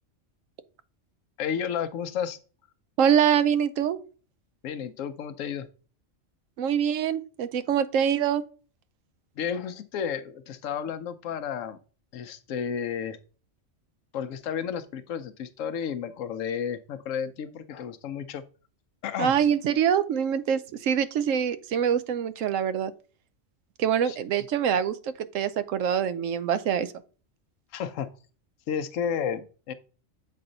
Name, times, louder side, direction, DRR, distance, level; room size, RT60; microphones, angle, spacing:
voice 1, 1.4-2.4 4.6-5.7 9.4-11.8 12.1-13.2 14.1-18.4 19.0-19.4 24.1-24.2 27.7-28.1 28.7-29.7, left 8 dB, 85° left, 1.0 m, -32 dB
voice 2, 3.0-4.0 6.6-8.4 19.2-22.9 23.8-26.9, right 8 dB, 85° right, 1.0 m, -24 dB
7.8 x 4.2 x 3.8 m
omnidirectional pair, 1.3 m